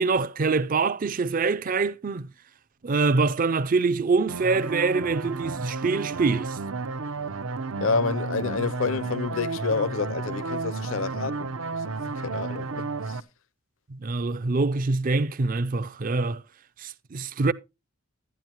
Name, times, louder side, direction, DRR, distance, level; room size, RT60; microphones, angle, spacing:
voice 1, 0.0-2.3 2.8-6.6 13.9-16.4 16.8-17.5, right 4 dB, 40° right, 0.5 m, -25 dB
sound 1, 4.3-13.2, right 4 dB, 70° right, 0.7 m, -32 dB
voice 2, 7.8-11.5 12.1-13.2, left 4 dB, 65° left, 0.6 m, -28 dB
12.0 x 9.7 x 2.9 m
head